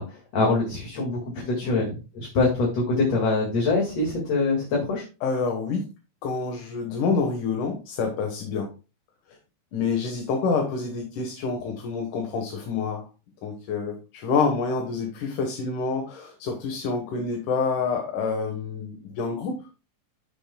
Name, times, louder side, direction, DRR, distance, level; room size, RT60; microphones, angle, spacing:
voice 1, 0.0-5.1, left 3 dB, 55° left, -1 dB, 3.0 m, -24 dB
voice 2, 5.2-5.8 6.2-8.7 9.7-13.1 13.4-19.5, left 4 dB, 85° left, 3 dB, 2.9 m, -27 dB
13.0 x 7.0 x 2.2 m, 0.30 s
omnidirectional pair, 3.5 m